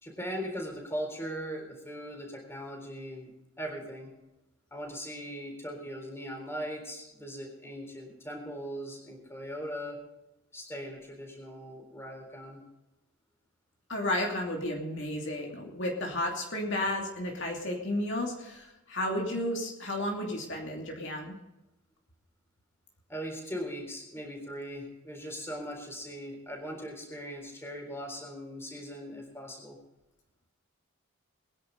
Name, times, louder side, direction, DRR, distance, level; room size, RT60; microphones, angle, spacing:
voice 1, 0.0-3.3 3.6-4.1 4.7-10.0 10.5-12.6 23.1-29.8, equal, 10° left, 2 dB, 3.8 m, -39 dB
voice 2, 13.9-21.3, left 1 dB, 55° left, -1 dB, 2.6 m, -32 dB
22.0 x 10.5 x 4.0 m, 0.94 s
head